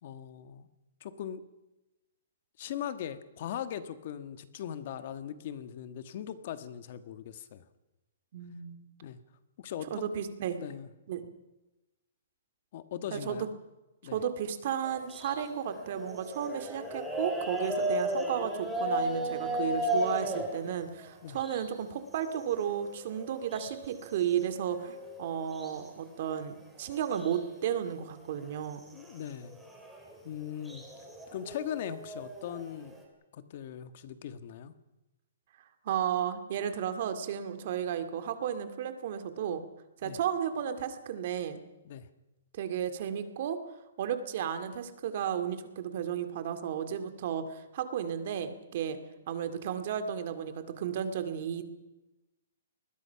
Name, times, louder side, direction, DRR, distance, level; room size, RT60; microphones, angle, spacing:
voice 1, 0.0-0.7 1.0-1.4 2.6-7.6 9.0-9.2 9.6-10.0 10.6-10.9 12.7-13.5 14.0-14.2 21.2-21.4 28.9-29.6 30.2-30.8 31.3-32.9 33.3-34.7 40.0-40.2 41.8-42.1, left 9 dB, 40° left, 11 dB, 1.5 m, -39 dB
voice 2, 8.3-8.8 9.9-10.6 11.1-11.2 13.1-13.5 14.1-28.8 35.8-39.6 40.0-41.6 42.5-43.6 44.0-49.0 49.3-51.6, right 9 dB, 40° right, 9 dB, 2.3 m, -33 dB
sound 1, 14.8-21.8 22.2-25.9 26.3-26.4 26.6-27.4 27.6-33.0, right 1 dB, ahead, 3.2 m, -36 dB
26.0 x 20.5 x 5.9 m, 1.0 s
hypercardioid pair, 170°, 0 cm